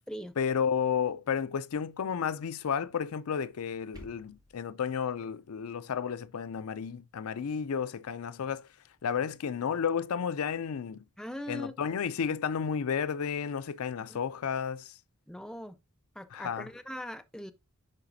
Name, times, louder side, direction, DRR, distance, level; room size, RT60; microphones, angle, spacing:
voice 1, 0.4-8.7 9.0-11.0 11.5-14.9 16.3-16.7, left 7 dB, 80° left, 0.4 m, -32 dB
sound 1, 3.5-4.5, equal, 20° right, 1.8 m, -52 dB
voice 2, 11.2-12.0 14.0-14.2 15.3-15.8 16.2-17.5, equal, 5° left, 0.4 m, -41 dB
10.5 x 4.0 x 2.6 m
head